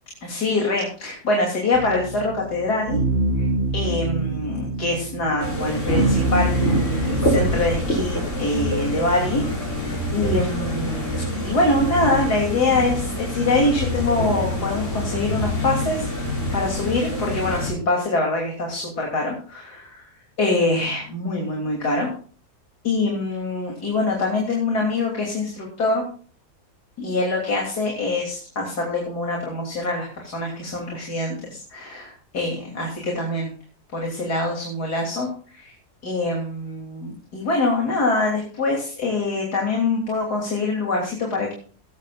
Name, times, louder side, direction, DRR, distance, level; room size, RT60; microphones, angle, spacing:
voice 1, 0.2-3.0 3.4-3.5 3.7-9.4 10.1-16.1 16.5-20.1 20.4-22.1 22.8-26.0 27.0-33.5 33.9-35.7 36.0-41.5, left 2 dB, 85° left, -1 dB, 3.7 m, -24 dB
sound 1, 1.7-7.5, right 2 dB, 40° right, 1.7 m, -25 dB
sound 2, 5.4-17.7, left 1 dB, 50° left, 6.4 m, -26 dB
19.0 x 14.5 x 2.5 m, 0.41 s
omnidirectional pair, 1.7 m